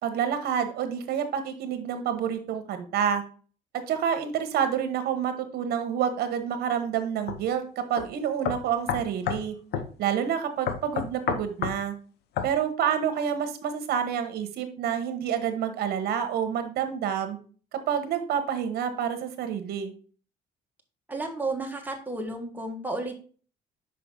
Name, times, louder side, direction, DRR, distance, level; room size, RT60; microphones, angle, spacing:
voice 1, 0.0-3.2 3.9-9.5 10.0-11.9 12.4-17.4 17.7-19.9, right 8 dB, 70° right, 8 dB, 1.2 m, -28 dB
sound 1, 7.3-7.4 8.0-8.1 8.4-9.5 9.7-9.9 10.7-11.8 12.4-12.5, left 8 dB, 75° left, 0.8 m, -29 dB
voice 2, 21.1-23.2, right 2 dB, 10° right, 2 dB, 1.4 m, -32 dB
5.8 x 5.1 x 3.8 m, 0.40 s
cardioid pair, 110°, 17 cm